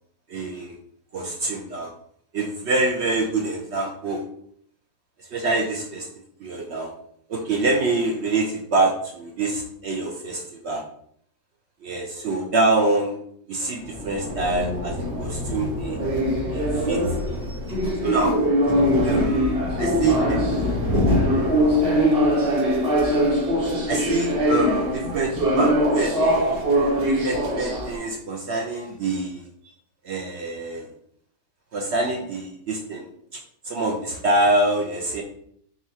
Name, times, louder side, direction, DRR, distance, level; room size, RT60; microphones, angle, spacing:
voice 1, 0.3-0.8 1.1-1.9 2.3-4.2 5.3-6.1 6.4-6.9 7.3-10.8 11.8-13.2 13.5-16.0 16.5-16.6 16.9-17.0 17.3-17.4 18.0-18.3 19.0-20.8 23.9-29.4 30.0-30.9 31.7-33.1 33.6-35.2, right 2 dB, 85° right, 1 dB, 0.5 m, -25 dB
sound 1, 13.8-28.0, equal, 40° right, 1.0 m, -22 dB
4.0 x 2.4 x 4.1 m, 0.65 s
omnidirectional pair, 1.8 m